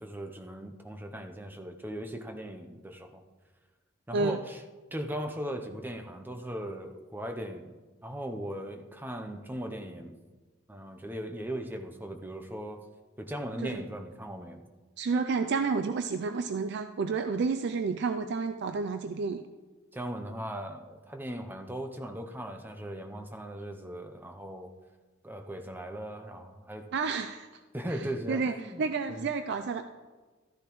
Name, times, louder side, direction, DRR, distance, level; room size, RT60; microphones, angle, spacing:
voice 1, 0.0-3.2 4.1-4.6 4.9-7.7 8.0-10.2 10.7-12.8 13.2-14.6 19.9-24.7 25.2-26.9 27.7-28.8 29.1-29.3, equal, 10° right, 5 dB, 0.6 m, -38 dB
voice 2, 15.0-19.4 26.9-27.5 28.3-29.8, right 4 dB, 60° right, 8 dB, 0.4 m, -30 dB
13.5 x 10.0 x 3.0 m, 1.3 s
head